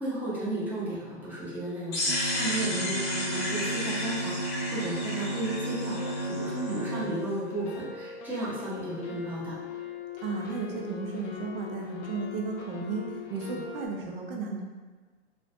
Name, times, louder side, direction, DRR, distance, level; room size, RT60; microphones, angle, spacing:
voice 1, 0.0-6.0 6.3-9.6, right 1 dB, 5° right, -10 dB, 0.8 m, -34 dB
sound 1, 1.9-6.8, left 1 dB, 40° left, 0.7 m, -33 dB
sound 2, 2.1-7.1, right 2 dB, 70° right, 0.9 m, -33 dB
sound 3, 5.9-13.9, left 6 dB, 75° left, 0.5 m, -42 dB
voice 2, 10.2-14.6, right 4 dB, 55° right, 1 dB, 0.6 m, -34 dB
2.4 x 2.2 x 2.5 m, 1.4 s
hypercardioid pair, 110°, 35 cm